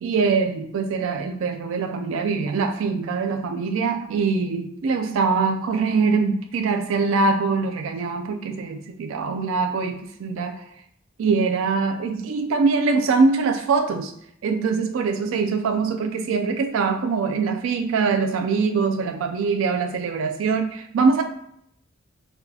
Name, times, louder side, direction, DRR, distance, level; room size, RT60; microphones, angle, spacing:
voice 1, 0.0-10.6 11.2-14.1 14.4-21.2, right 4 dB, 90° right, 6 dB, 0.4 m, -23 dB
5.8 x 2.3 x 2.7 m, 0.73 s
head